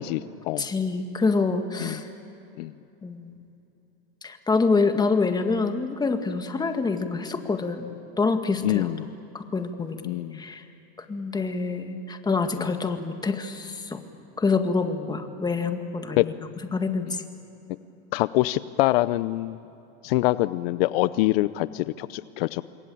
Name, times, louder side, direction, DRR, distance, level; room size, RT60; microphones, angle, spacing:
voice 1, 0.0-0.6 1.8-2.0 2.6-2.7 8.6-9.1 10.0-10.4 12.6-12.7 16.2-16.3 18.1-19.6 20.0-22.6, left 17 dB, 70° left, 16 dB, 0.7 m, -25 dB
voice 2, 0.6-2.1 3.0-3.3 4.2-7.9 8.2-8.9 9.3-10.6 11.0-14.0 14.4-16.3 16.7-17.2, left 4 dB, 15° left, 7 dB, 1.9 m, -26 dB
27.5 x 22.5 x 8.7 m, 2.9 s
supercardioid pair, 125°, 30 cm